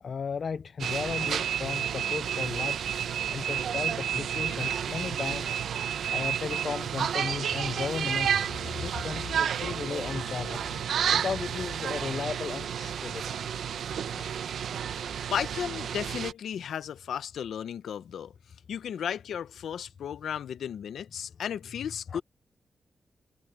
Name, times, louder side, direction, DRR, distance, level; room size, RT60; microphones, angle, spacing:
voice 1, 0.0-2.8 3.3-5.6 6.1-8.5 8.8-10.6 11.1-13.2 22.1-22.2, left 6 dB, 45° left, 0.4 m, -35 dB
sound 1, 0.8-16.3, right 8 dB, 80° right, 0.8 m, -31 dB
voice 2, 15.3-18.3 18.7-22.2, left 8 dB, 85° left, 0.7 m, -34 dB
wide cardioid pair, 155°, 0 cm